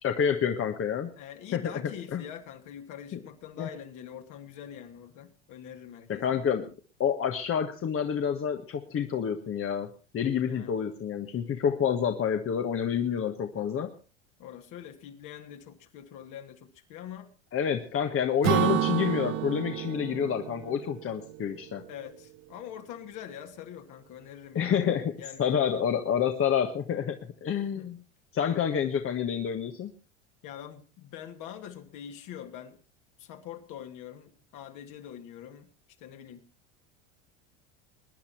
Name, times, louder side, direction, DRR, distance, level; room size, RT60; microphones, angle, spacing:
voice 1, 0.0-1.1 1.5-1.6 2.1-2.2 3.1-3.2 3.6-3.7 6.1-6.7 7.0-13.9 17.5-21.8 24.5-28.0 28.3-29.9, left 8 dB, 35° left, 5 dB, 1.5 m, -28 dB
voice 2, 1.2-6.4 10.4-10.8 14.4-17.3 21.9-25.8 27.7-28.0 30.4-32.8 33.2-35.7 36.0-36.4, left 9 dB, 55° left, 5 dB, 2.6 m, -44 dB
Acoustic guitar / Strum, 18.4-22.1, right 13 dB, 45° right, 1.0 m, -30 dB
21.5 x 10.0 x 4.4 m, 0.35 s
hypercardioid pair, 85°, 37 cm